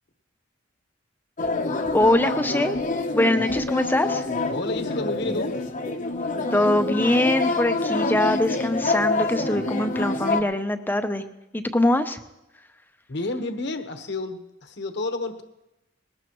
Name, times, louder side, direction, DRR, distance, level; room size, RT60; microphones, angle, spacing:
sound 1, 1.4-10.4, left 2 dB, 40° left, 0.9 m, -26 dB
voice 1, 1.9-2.8 3.1-4.2 6.5-11.2 11.5-12.2, left 1 dB, 10° left, 8 dB, 0.7 m, -22 dB
voice 2, 4.5-5.6 13.1-15.4, left 2 dB, 60° left, 6 dB, 1.2 m, -30 dB
20.5 x 18.5 x 3.1 m, 0.92 s
head